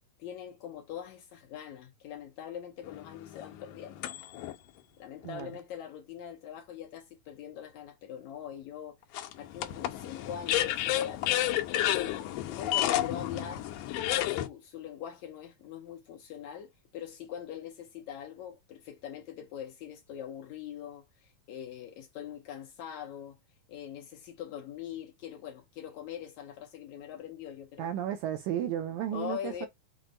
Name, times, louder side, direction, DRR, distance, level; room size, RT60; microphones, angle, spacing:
voice 1, 0.2-4.1 5.0-9.0 9.4-11.4 11.9-13.7 14.3-23.4 23.7-27.9 29.1-29.7, left 9 dB, 75° left, 1.8 m, -42 dB
sound 1, 2.9-4.6 5.2-5.3 9.1-14.5, left 13 dB, 90° left, 2.3 m, -31 dB
voice 2, 27.8-29.7, right 10 dB, 80° right, 1.7 m, -33 dB
6.2 x 2.1 x 3.7 m
omnidirectional pair, 3.8 m